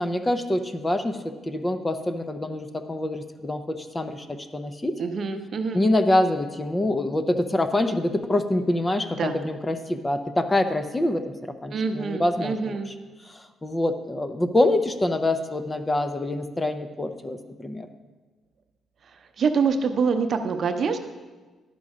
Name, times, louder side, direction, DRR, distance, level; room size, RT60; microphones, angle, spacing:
voice 1, 0.0-4.9 5.7-11.2 11.6-12.8 13.3-17.9, left 1 dB, 20° left, 8 dB, 0.6 m, -25 dB
voice 2, 5.0-5.8 9.2-9.4 11.7-12.9 19.1-21.0, right 5 dB, 55° right, 7 dB, 0.7 m, -26 dB
11.0 x 5.3 x 4.9 m, 1.3 s
cardioid pair, 90°, 0 cm